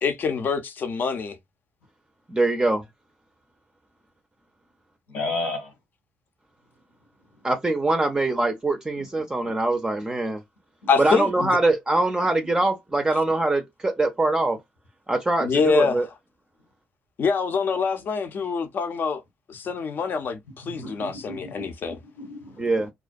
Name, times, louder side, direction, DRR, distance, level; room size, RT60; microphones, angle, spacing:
voice 1, 0.0-1.4 10.9-11.6 15.4-16.0 17.2-19.2 19.5-22.0, left 5 dB, 55° left, 0.6 m, -25 dB
voice 2, 2.3-2.8 7.4-10.4 11.0-14.6 15.1-16.0 22.6-22.9, right 2 dB, 20° right, 0.5 m, -23 dB
voice 3, 5.1-5.7 9.0-9.1 20.7-22.7, left 3 dB, 80° left, 1.0 m, -33 dB
2.4 x 2.2 x 2.5 m
supercardioid pair, 75°, 4 cm